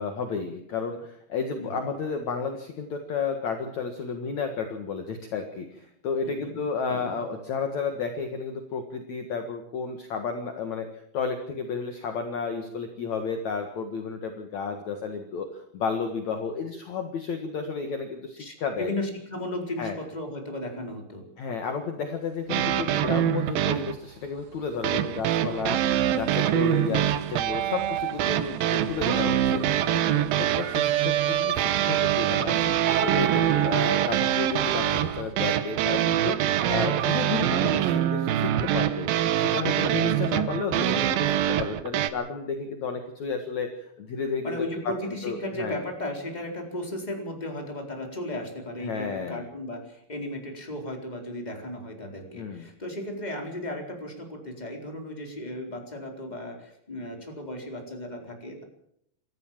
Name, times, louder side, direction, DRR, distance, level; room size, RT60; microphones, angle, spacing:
voice 1, 0.0-18.9 19.8-20.0 21.4-27.0 27.3-39.1 39.4-44.6 44.8-44.9 45.2-45.8 48.8-49.5 52.3-52.7, left 5 dB, 60° left, 5 dB, 1.9 m, -32 dB
voice 2, 6.2-6.5 6.9-7.1 18.4-21.2 26.8-27.1 40.1-40.4 44.4-58.6, left 1 dB, 10° left, 2 dB, 3.6 m, -35 dB
sound 1, 22.5-24.0 24.8-42.1, right 11 dB, 90° right, 2.0 m, -24 dB
sound 2, 23.2-23.3 23.8-35.3, right 9 dB, 60° right, 3.3 m, -37 dB
27.0 x 14.0 x 7.5 m, 0.73 s
omnidirectional pair, 5.8 m